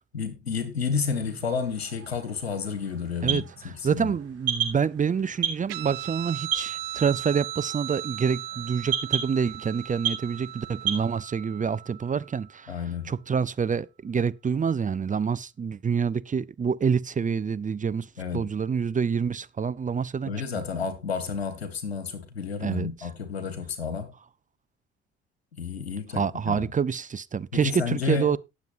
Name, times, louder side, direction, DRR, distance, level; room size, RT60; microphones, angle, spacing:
voice 1, 0.1-4.2 12.7-13.1 18.2-18.5 20.2-24.1 25.6-26.7 27.5-28.4, left 5 dB, 90° left, 1.7 m, -31 dB
sound 1, 1.1-11.0, right 8 dB, 55° right, 5.4 m, -34 dB
voice 2, 3.2-12.7 13.0-18.1 18.3-20.3 22.6-23.1 26.1-28.4, right 6 dB, 25° right, 0.7 m, -27 dB
Guitar, 5.7-12.6, right 14 dB, 75° right, 0.8 m, -38 dB
18.5 x 7.3 x 2.5 m
hypercardioid pair, 50°, 30 cm